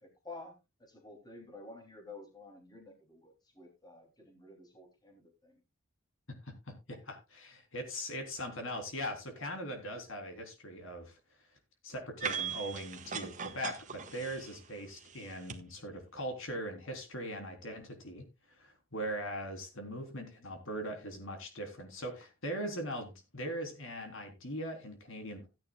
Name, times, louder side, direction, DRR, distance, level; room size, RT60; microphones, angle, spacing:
voice 1, 0.2-0.5 0.9-5.6, left 3 dB, 20° left, 4 dB, 3.0 m, -51 dB
voice 2, 6.4-11.2 11.8-25.5, equal, 65° left, 6 dB, 3.5 m, -40 dB
sound 1, 12.2-15.6, right 6 dB, 35° right, 1.6 m, -40 dB
16.0 x 9.9 x 2.3 m, 0.26 s
head